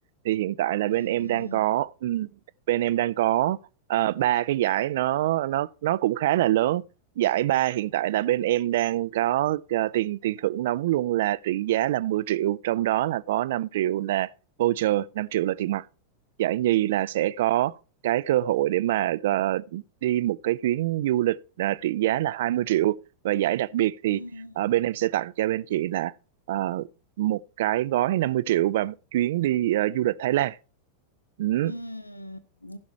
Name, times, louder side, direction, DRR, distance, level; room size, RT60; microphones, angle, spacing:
voice 1, 0.2-2.3 2.7-3.6 3.9-6.8 7.2-14.3 14.6-15.9 16.4-17.8 18.0-23.0 23.2-24.2 24.6-26.1 26.5-26.9 27.2-30.6 31.4-31.7, right 14 dB, 55° right, 0.4 m, -25 dB
voice 2, 0.9-1.6 24.1-24.5 31.6-32.8, equal, 85° left, 0.7 m, -39 dB
15.0 x 6.1 x 4.3 m
figure-of-eight pair, 90°, 0 cm